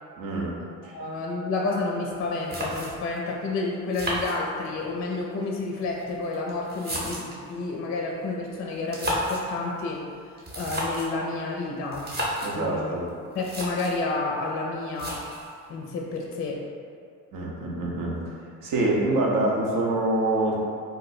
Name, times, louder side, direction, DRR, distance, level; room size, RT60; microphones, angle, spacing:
voice 1, 0.2-0.6 0.8-0.9 12.4-13.0 17.3-18.2 18.6-20.6, right 2 dB, 70° right, -3 dB, 0.8 m, -25 dB
voice 2, 0.9-10.0 10.5-12.1 12.5-12.9 13.3-15.2 15.7-16.6, left 3 dB, 40° left, -1 dB, 0.4 m, -30 dB
sound 1, 2.1-2.2 2.5-3.2 3.9-4.9 5.8-7.5 8.7-9.5 10.4-11.2 11.9-12.6 13.1-13.2 13.4-14.0 15.0-15.5, equal, 30° right, 0.8 m, -32 dB
2.6 x 2.2 x 4.0 m, 2.4 s
cardioid pair, 90°, 34 cm